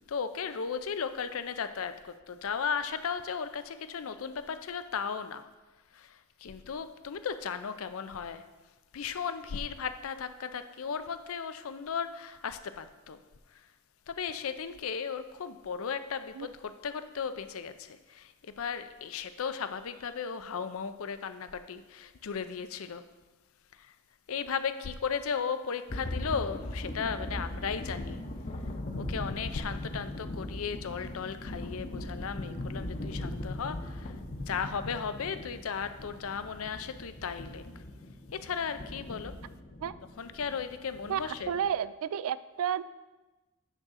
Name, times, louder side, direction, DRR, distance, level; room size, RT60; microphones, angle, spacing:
voice 1, 0.1-5.5 5.9-8.4 8.9-13.2 14.1-23.0 23.8-23.9 24.3-28.2 29.0-34.1 34.5-37.6 38.3-39.3 40.2-41.6, left 6 dB, 75° left, 11 dB, 0.5 m, -36 dB
sound 1, 25.9-41.7, left 1 dB, 40° left, 0.7 m, -39 dB
voice 2, 41.1-42.8, right 8 dB, 80° right, 16 dB, 0.3 m, -31 dB
8.9 x 3.7 x 6.3 m, 1.2 s
head